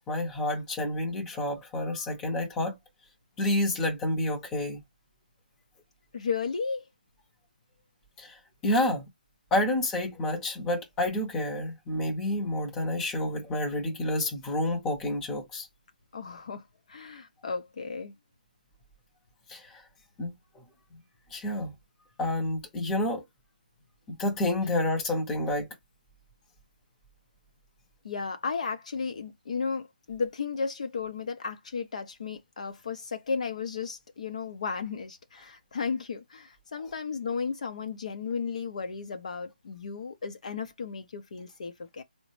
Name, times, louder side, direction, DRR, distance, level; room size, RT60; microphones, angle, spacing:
voice 1, 0.0-2.7 3.4-4.8 8.2-8.3 8.6-9.1 9.5-15.7 19.5-19.6 20.2-20.3 21.3-21.7 22.2-23.2 24.1-25.7, left 1 dB, 10° left, 0.8 m, -29 dB
voice 2, 6.1-6.8 16.1-18.1 28.0-42.0, left 5 dB, 45° left, 0.6 m, -34 dB
3.9 x 2.1 x 3.1 m
hypercardioid pair, 165°, 5 cm